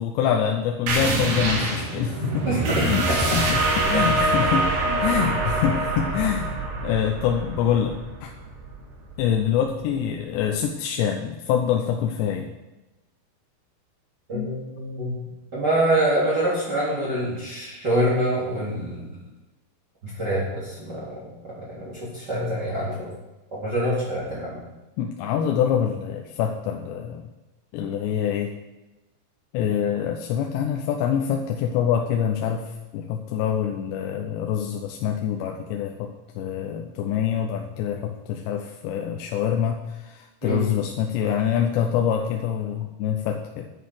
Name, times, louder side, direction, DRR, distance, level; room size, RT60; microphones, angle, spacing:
voice 1, 0.0-2.5 2.8-4.7 5.0-6.5 6.8-7.9 8.2-8.3 9.2-12.5 14.3-14.5 17.9-18.0 25.0-27.3 27.7-28.5 29.5-36.1 36.4-43.7, left 8 dB, 85° left, 3 dB, 3.1 m, -25 dB
sound 1, 0.9-10.1, right 2 dB, 70° right, 4.2 m, -25 dB
voice 2, 2.5-3.5 3.9-4.1 14.3-15.2 15.5-19.2 20.0-21.2 21.4-23.1 23.5-24.6 40.4-40.6, right 1 dB, 25° right, -8 dB, 3.8 m, -26 dB
10.5 x 10.0 x 6.3 m, 1.1 s
omnidirectional pair, 4.9 m